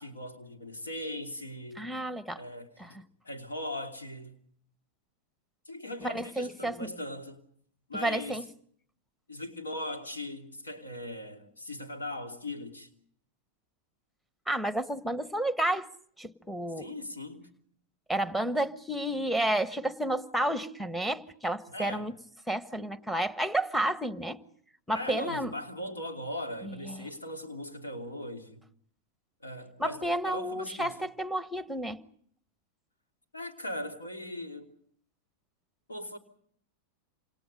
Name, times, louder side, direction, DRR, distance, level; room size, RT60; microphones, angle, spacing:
voice 1, 0.0-1.9 2.4-3.0 3.2-4.4 5.7-7.4 7.9-8.4 9.3-12.9 16.8-17.5 21.7-22.1 24.9-28.6 29.4-31.0 33.3-34.7 35.9-36.2, left 1 dB, 75° left, 2.9 m, -39 dB
voice 2, 1.8-2.4 2.8-2.9 6.0-6.9 8.0-8.4 14.5-15.9 16.2-16.9 18.1-22.1 22.5-24.4 24.9-25.5 26.6-27.1 29.8-32.0, right 1 dB, ahead, 1.3 m, -31 dB
28.0 x 27.5 x 5.4 m
figure-of-eight pair, 90°, 0 cm